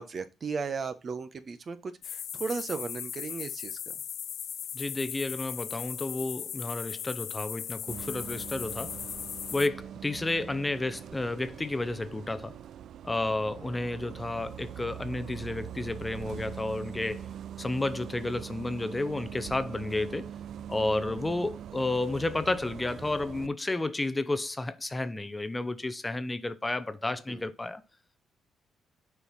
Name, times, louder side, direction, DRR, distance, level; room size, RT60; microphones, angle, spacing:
voice 1, 0.0-3.8 27.3-27.5, right 5 dB, 45° right, 1.1 m, -36 dB
sound 1, 2.0-9.7, left 9 dB, 65° left, 0.5 m, -38 dB
voice 2, 4.7-9.0 9.5-12.6 13.0-17.3 17.6-20.3 20.7-27.8, left 2 dB, 15° left, 0.7 m, -31 dB
Bus, 7.9-23.5, right 10 dB, 70° right, 0.3 m, -43 dB
6.9 x 4.6 x 5.6 m
cardioid pair, 90°, 0 cm